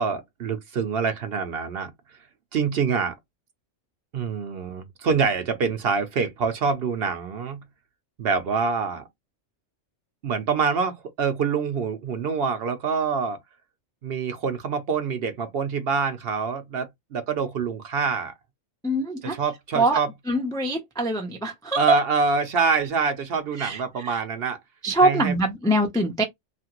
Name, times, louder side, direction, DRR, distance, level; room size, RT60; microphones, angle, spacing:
voice 1, 0.0-1.9 2.5-3.2 4.1-7.6 8.2-9.0 10.2-13.4 14.0-18.3 19.2-20.1 21.8-24.6 25.0-25.3, right 5 dB, 60° right, 0.8 m, -25 dB
voice 2, 18.8-19.4 19.7-20.0 20.3-22.0 23.6-24.2 24.8-26.2, right 2 dB, 5° left, 0.4 m, -23 dB
2.9 x 2.5 x 2.9 m
omnidirectional pair, 1.3 m